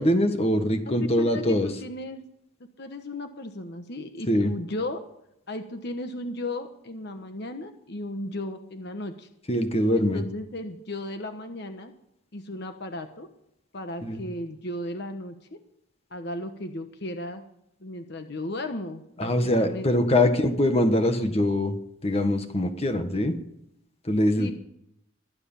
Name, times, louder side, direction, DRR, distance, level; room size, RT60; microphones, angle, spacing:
voice 1, 0.0-1.7 4.3-4.5 9.5-10.2 14.0-14.2 19.2-21.8 22.0-23.3 24.0-24.5, left 1 dB, 30° left, 6 dB, 1.6 m, -23 dB
voice 2, 0.9-2.2 2.8-5.0 5.5-9.3 10.0-11.9 12.3-13.3 13.7-15.4 16.1-17.4 17.8-19.3 19.6-20.1 24.4-24.5, left 1 dB, 55° left, 6 dB, 1.2 m, -35 dB
23.0 x 9.8 x 5.7 m, 0.79 s
head